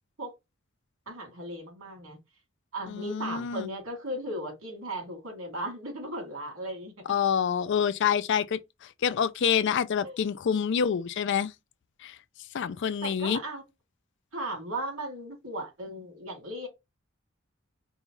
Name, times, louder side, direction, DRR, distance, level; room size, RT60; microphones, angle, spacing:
voice 1, 1.1-2.2 2.7-7.1 10.0-10.3 13.0-13.6 14.3-16.7, right 1 dB, 85° right, 2.4 m, -36 dB
voice 2, 2.9-3.7 7.1-8.6 9.0-11.5 12.0-12.1 12.5-13.4, left 7 dB, 60° left, 0.4 m, -27 dB
5.4 x 2.3 x 2.9 m
head